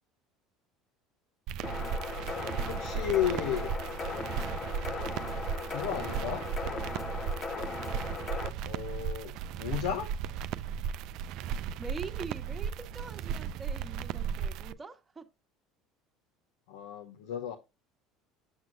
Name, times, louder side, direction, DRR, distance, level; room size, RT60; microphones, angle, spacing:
sound 1, 1.5-14.7, right 8 dB, 65° right, 0.4 m, -36 dB
sound 2, 1.6-8.5, left 4 dB, 35° left, 0.9 m, -38 dB
voice 1, 2.7-3.7 5.7-6.5 8.7-10.2 16.7-17.5, left 10 dB, 80° left, 0.8 m, -33 dB
voice 2, 11.8-15.3, right 4 dB, 20° right, 1.3 m, -43 dB
7.9 x 6.0 x 2.5 m
hypercardioid pair, 85°, 0 cm